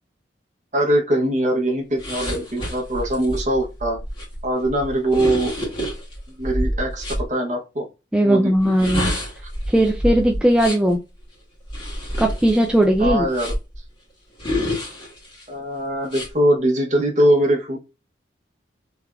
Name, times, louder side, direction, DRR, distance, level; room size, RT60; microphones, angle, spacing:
voice 1, 0.7-4.0 4.4-5.6 6.4-7.9 8.2-8.5 8.8-8.9 13.0-13.5 15.5-17.8, right 1 dB, 40° right, 2 dB, 0.9 m, -21 dB
sound 1, 2.0-7.3 8.6-10.9 11.7-13.8 14.4-15.4 16.1-16.3, equal, 30° left, 1.9 m, -28 dB
voice 2, 8.1-9.2 9.7-11.0 12.2-13.3, right 1 dB, 5° right, 1 dB, 0.3 m, -18 dB
3.4 x 3.3 x 2.4 m, 0.28 s
head